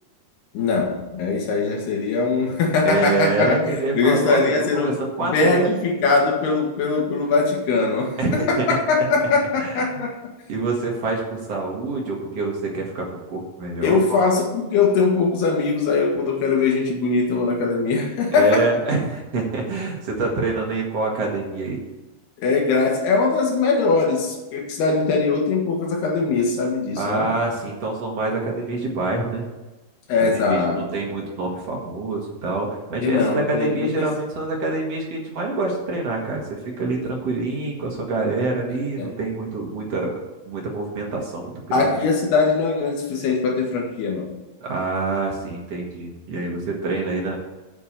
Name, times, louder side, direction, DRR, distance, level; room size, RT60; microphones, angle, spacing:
voice 1, 0.5-4.9 5.2-10.2 13.8-18.7 22.4-27.3 30.1-30.9 33.0-34.1 39.0-39.1 41.7-44.3, left 4 dB, 75° left, 0 dB, 3.7 m, -21 dB
voice 2, 2.9-4.4 4.7-5.6 8.2-8.8 9.6-9.8 10.5-14.2 18.3-21.8 27.0-29.4 30.5-40.1 40.5-41.9 44.6-47.4, right 3 dB, 50° right, -1 dB, 2.3 m, -26 dB
8.2 x 6.9 x 6.7 m, 1.1 s
omnidirectional pair, 4.7 m